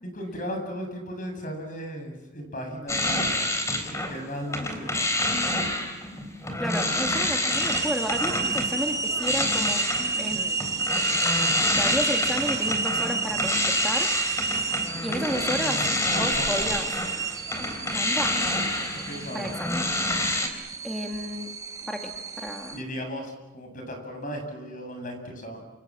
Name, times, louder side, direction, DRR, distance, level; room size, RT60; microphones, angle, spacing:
voice 1, 0.0-4.9 14.9-16.6 19.0-19.5 22.7-25.6, equal, 45° left, 5 dB, 7.8 m, -36 dB
sound 1, 2.9-4.2 4.5-20.5, left 1 dB, 15° left, 3.8 m, -28 dB
voice 2, 6.6-9.8 10.2-10.6 11.7-14.1 15.0-15.8 16.2-16.9 17.9-18.4 19.3-19.9 20.8-21.5 21.8-22.8, equal, ahead, 2 dB, 2.2 m, -32 dB
sound 2, 7.5-22.8, right 4 dB, 20° right, 1.1 m, -31 dB
28.5 x 27.5 x 7.6 m, 1.1 s
head